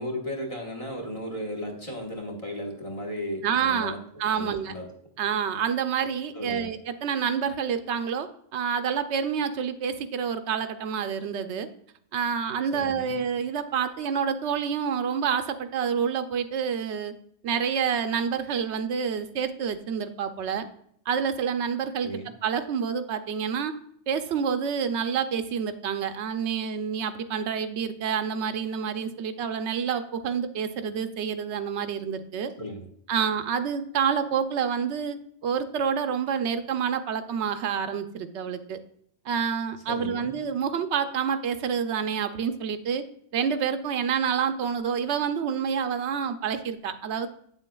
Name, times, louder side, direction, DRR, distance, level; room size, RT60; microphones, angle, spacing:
voice 1, 0.0-4.0 4.3-4.9 6.3-6.7 12.7-13.2 22.0-22.3 32.6-32.9 39.9-40.4, equal, 30° left, 2 dB, 1.2 m, -35 dB
voice 2, 3.4-4.7 5.2-11.7 12.1-17.1 17.4-20.7 21.1-22.1 22.4-23.7 24.1-32.5 33.1-35.2 35.4-38.8 39.3-43.0 43.3-47.3, right 7 dB, 85° right, 9 dB, 0.9 m, -28 dB
8.3 x 7.1 x 2.3 m, 0.67 s
omnidirectional pair, 1.1 m